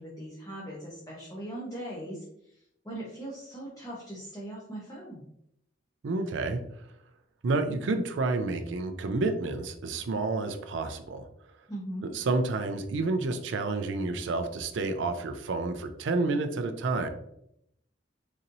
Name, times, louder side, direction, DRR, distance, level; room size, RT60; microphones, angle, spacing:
voice 1, 0.0-5.2 11.7-12.1, right 1 dB, 20° left, -5 dB, 0.7 m, -40 dB
voice 2, 6.0-6.6 7.4-11.3 12.1-17.1, right 3 dB, 75° right, 7 dB, 0.4 m, -29 dB
4.1 x 2.7 x 2.6 m, 0.75 s
head